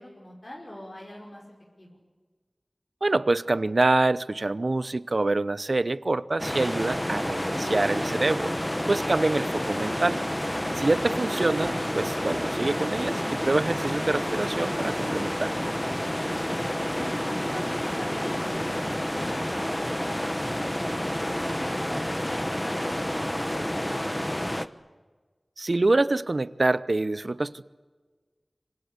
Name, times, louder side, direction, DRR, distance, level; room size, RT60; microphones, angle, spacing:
voice 1, 0.0-1.4 1.8-2.0 16.2-16.6 16.9-20.1 20.7-24.5, left 1 dB, 40° left, -3 dB, 5.8 m, -43 dB
voice 2, 3.0-8.5 8.9-10.2 10.8-15.6 25.6-27.6, right 2 dB, 65° right, 16 dB, 0.8 m, -26 dB
sound 1, 6.4-24.7, equal, 15° left, 1.1 m, -29 dB
27.0 x 25.5 x 8.4 m, 1.4 s
wide cardioid pair, 55°, 0 cm